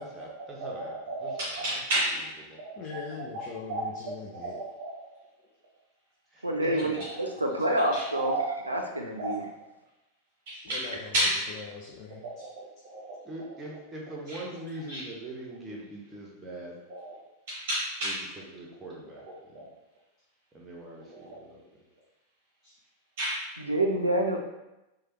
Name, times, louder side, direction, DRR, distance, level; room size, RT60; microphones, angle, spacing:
voice 1, 0.0-1.3 2.5-2.6 6.3-7.1 13.2-16.8 18.0-18.2 18.5-19.7 20.5-21.6, right 1 dB, 15° right, -3 dB, 0.8 m, -42 dB
voice 2, 0.6-2.3 2.6-3.0 3.3-5.2 7.0-7.3 7.9-8.8 9.2-9.3 10.5-10.8 11.1-11.4 12.2-13.2 14.3-14.4 14.9-15.0 16.9-17.1 17.5-18.2 19.5-19.7 21.1-21.4 23.2-23.5, right 1 dB, 50° right, -6 dB, 0.7 m, -33 dB
voice 3, 2.8-4.6 10.5-11.1 11.7-12.5 22.6-22.7, left 5 dB, 35° left, -2 dB, 0.4 m, -41 dB
voice 4, 6.4-8.3 8.7-9.4 23.7-24.4, right 1 dB, 85° right, 2 dB, 0.4 m, -27 dB
3.1 x 2.2 x 3.1 m, 0.96 s
figure-of-eight pair, 90°, 0 cm